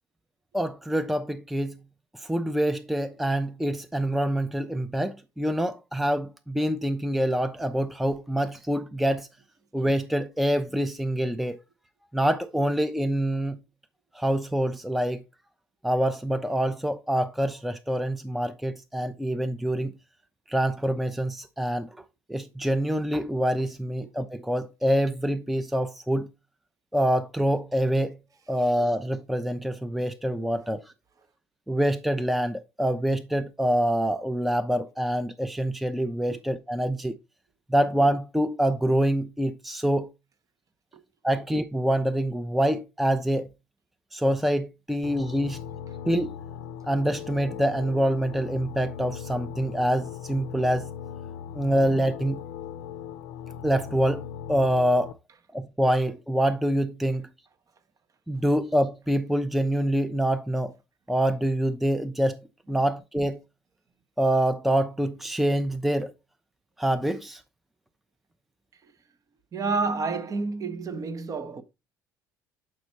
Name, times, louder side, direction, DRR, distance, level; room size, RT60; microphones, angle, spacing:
voice 1, 0.5-1.8 2.2-9.3 9.7-11.6 12.1-13.6 14.1-15.2 15.8-20.0 20.5-21.9 22.3-26.3 26.9-28.2 28.5-30.8 31.7-37.1 37.7-40.1 41.2-43.5 44.1-45.6 46.0-46.3 46.9-50.9 51.5-52.4 53.6-54.2 54.5-55.1 55.5-57.2 58.3-60.7 61.1-63.4 64.2-66.1 66.8-67.4, right 1 dB, ahead, 0.6 m, -26 dB
sound 1, 45.0-55.1, left 9 dB, 60° left, 0.5 m, -39 dB
voice 2, 69.5-71.6, right 4 dB, 35° right, 1.0 m, -29 dB
7.5 x 5.2 x 4.2 m
figure-of-eight pair, 55°, 10 cm